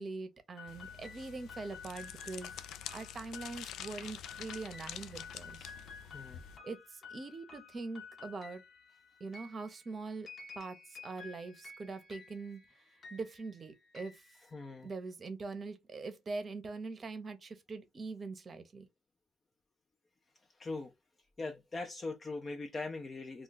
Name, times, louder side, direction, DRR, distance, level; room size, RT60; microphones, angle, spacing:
voice 1, 0.0-2.5 2.9-5.7 6.6-8.6 9.2-10.3 10.5-12.6 13.1-14.2 14.8-18.9, right 3 dB, 40° right, 0.7 m, -43 dB
sound 1, 0.6-15.0, left 5 dB, 50° left, 0.8 m, -53 dB
sound 2, 0.7-6.6, left 9 dB, 80° left, 0.3 m, -47 dB
voice 2, 6.0-6.4 14.5-14.9 20.5-20.9 21.4-23.4, left 3 dB, 35° left, 0.5 m, -41 dB
2.3 x 2.3 x 3.9 m
cardioid pair, 90°, 0 cm